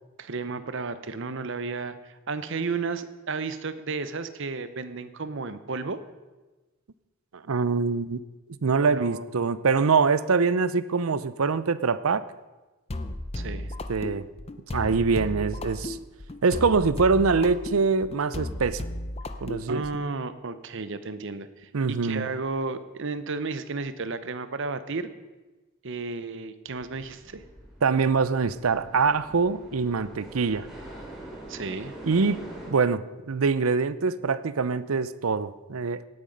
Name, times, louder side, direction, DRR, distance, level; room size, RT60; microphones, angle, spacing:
voice 1, 0.2-6.0 8.7-9.3 13.3-13.7 19.7-25.1 25.8-27.4 31.5-31.9, right 4 dB, 60° right, 12 dB, 0.9 m, -33 dB
voice 2, 7.3-8.2 8.6-12.2 13.9-14.3 14.7-16.0 16.4-18.8 19.4-19.8 21.7-22.3 27.8-30.7 32.0-36.0, right 4 dB, 85° right, 16 dB, 0.6 m, -24 dB
sound 1, 12.9-20.1, left 1 dB, 30° left, 0.7 m, -35 dB
sound 2, 26.7-32.7, right 1 dB, 5° right, 3.8 m, -44 dB
17.5 x 8.9 x 5.4 m, 1.2 s
head